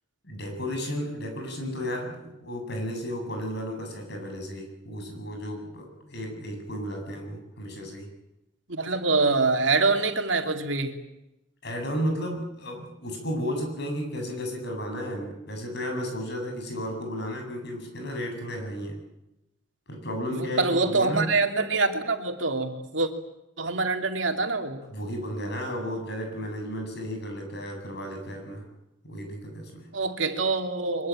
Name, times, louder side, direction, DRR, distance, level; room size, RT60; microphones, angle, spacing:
voice 1, 0.2-8.1 11.6-19.0 19.9-21.3 24.9-28.6 29.0-29.9, equal, 60° left, 3 dB, 8.0 m, -33 dB
voice 2, 8.7-10.9 20.3-23.1 23.6-24.8 29.9-31.1, right 3 dB, 70° right, 5 dB, 2.9 m, -25 dB
24.0 x 23.0 x 8.8 m, 0.88 s
head